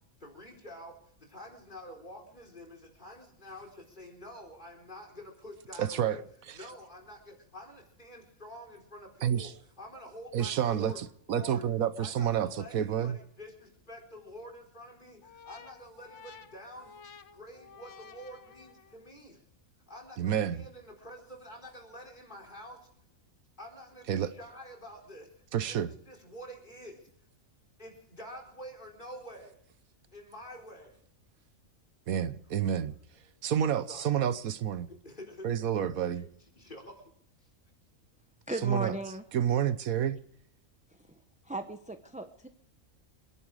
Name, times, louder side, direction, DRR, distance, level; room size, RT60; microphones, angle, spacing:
voice 1, 0.2-6.2 6.5-9.5 9.8-11.0 11.3-11.6 12.0-17.0 17.3-19.4 19.9-22.9 23.6-27.1 27.8-29.6 30.1-31.0 32.6-32.7 33.2-33.3 33.9-34.1 35.0-35.5 36.6-37.1 37.4-37.5, equal, 35° left, 4.4 m, -48 dB
voice 2, 5.8-6.2 9.2-9.5 10.3-13.2 20.2-20.6 24.1-24.3 25.5-25.9 32.1-32.9 33.4-34.9 35.4-36.3 38.6-39.0 39.3-40.2, right 9 dB, 85° right, 1.4 m, -29 dB
sound 1, 15.2-19.1, left 6 dB, 60° left, 1.3 m, -53 dB
voice 3, 38.5-39.2 41.4-42.5, right 1 dB, 5° right, 0.8 m, -36 dB
26.0 x 11.0 x 4.9 m
omnidirectional pair, 1.4 m